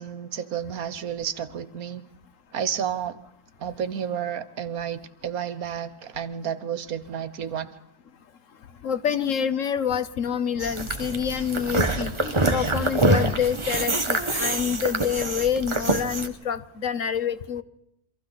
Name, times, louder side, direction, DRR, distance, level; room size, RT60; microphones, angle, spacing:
voice 1, 0.0-2.1 2.5-3.2 3.6-7.7, right 8 dB, 70° right, 13 dB, 1.5 m, -31 dB
voice 2, 8.8-17.6, left 8 dB, 60° left, 13 dB, 1.3 m, -27 dB
sound 1, 10.6-16.3, right 2 dB, 20° right, 1.3 m, -25 dB
28.5 x 24.5 x 4.1 m, 0.82 s
omnidirectional pair, 1.6 m